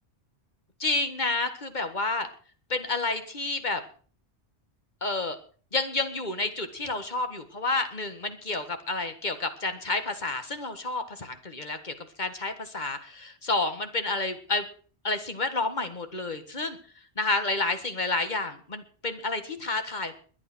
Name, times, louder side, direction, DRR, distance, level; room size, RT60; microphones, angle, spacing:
voice 1, 0.8-2.3 2.7-3.8 5.0-5.4 5.7-14.6 15.0-16.8 17.2-20.1, left 3 dB, 40° left, 8 dB, 1.9 m, -30 dB
22.0 x 8.5 x 6.2 m, 0.43 s
omnidirectional pair, 1.1 m